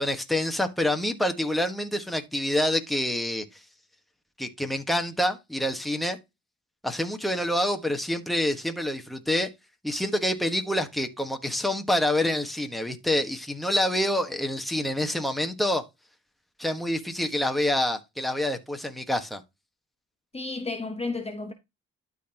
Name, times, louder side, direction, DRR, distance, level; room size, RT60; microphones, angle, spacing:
voice 1, 0.0-3.6 4.4-6.2 6.8-9.5 9.8-15.8 16.6-19.4, left 1 dB, ahead, 1.4 m, -27 dB
voice 2, 20.3-21.5, left 3 dB, 20° left, 1.1 m, -32 dB
12.0 x 4.1 x 2.9 m
cardioid pair, 90°, 30 cm